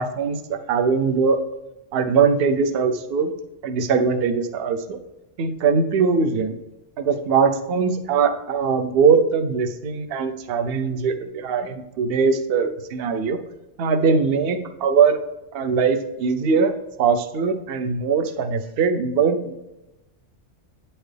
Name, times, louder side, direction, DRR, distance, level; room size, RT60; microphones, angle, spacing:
voice 1, 0.0-1.4 1.9-3.3 3.6-5.0 5.4-6.5 7.0-13.4 13.8-15.2 15.5-19.5, right 5 dB, 60° right, 9 dB, 0.7 m, -21 dB
9.0 x 4.4 x 3.3 m, 0.97 s
omnidirectional pair, 1.3 m